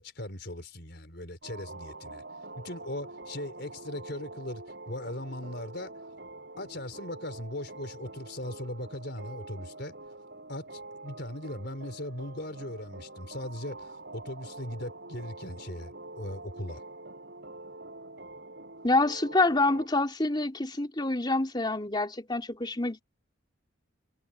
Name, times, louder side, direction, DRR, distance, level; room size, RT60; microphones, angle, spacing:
voice 1, 0.0-2.2 2.6-5.9 6.6-9.9 10.5-16.8, left 1 dB, 55° left, 5.0 m, -39 dB
sound 1, 1.4-19.9, right 2 dB, 55° right, 7.4 m, -45 dB
voice 2, 18.8-23.0, left 2 dB, 20° left, 3.2 m, -27 dB
head